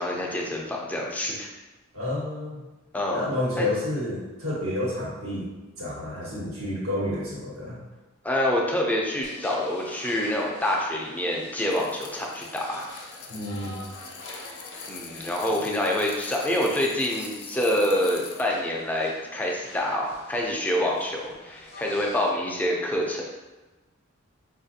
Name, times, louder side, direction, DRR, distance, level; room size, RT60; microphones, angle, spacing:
voice 1, 0.0-1.5 2.9-3.3 3.6-3.7 8.2-12.9 14.9-23.4, left 1 dB, 10° left, -2 dB, 0.4 m, -27 dB
voice 2, 1.9-2.6 3.1-5.5 5.8-7.8 13.3-13.8, left 1 dB, 85° right, -7 dB, 1.3 m, -30 dB
sound 1, 9.2-22.3, left 1 dB, 55° left, 0.7 m, -46 dB
sound 2, 11.7-18.5, left 6 dB, 90° left, 0.5 m, -43 dB
4.4 x 2.5 x 2.7 m, 1.1 s
head